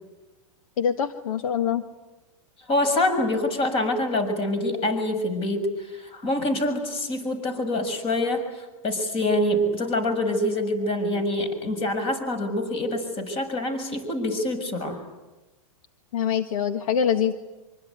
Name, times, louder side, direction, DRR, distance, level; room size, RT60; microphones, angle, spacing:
voice 1, 0.8-1.8 16.1-17.3, left 8 dB, 70° left, 9 dB, 1.6 m, -24 dB
voice 2, 2.7-15.0, left 1 dB, 30° left, 8 dB, 6.6 m, -26 dB
25.5 x 24.5 x 9.5 m, 1.1 s
hypercardioid pair, 135°, 18 cm